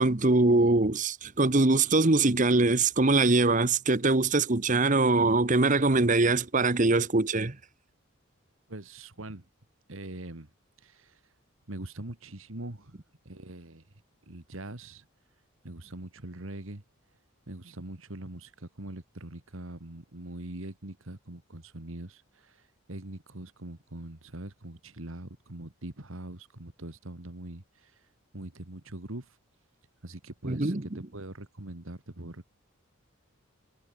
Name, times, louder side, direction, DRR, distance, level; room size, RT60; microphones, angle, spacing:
voice 1, 0.0-7.6 30.4-30.8, right 3 dB, 35° right, 1.1 m, -23 dB
voice 2, 8.7-9.5 9.9-10.5 10.8-11.2 11.7-13.0 13.2-13.8 14.3-15.0 15.6-16.8 17.5-28.1 28.3-29.4 30.0-32.5, right 1 dB, 70° right, 2.2 m, -42 dB
head